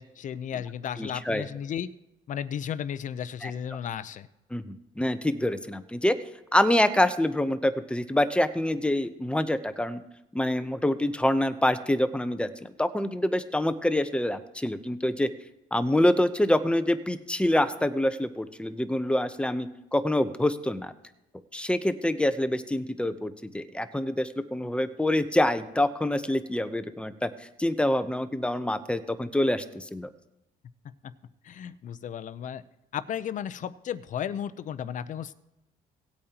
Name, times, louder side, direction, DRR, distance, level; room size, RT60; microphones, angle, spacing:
voice 1, 0.0-1.9 2.3-4.3 31.0-31.1 31.4-32.6 32.9-35.3, left 9 dB, 50° left, 14 dB, 0.6 m, -34 dB
voice 2, 1.0-1.4 3.4-3.5 4.5-6.1 6.5-10.0 10.3-15.3 15.7-20.9 21.5-27.3 27.6-30.1, left 1 dB, 5° left, 11 dB, 0.7 m, -26 dB
18.0 x 8.6 x 2.9 m, 0.91 s
cardioid pair, 110°, 17 cm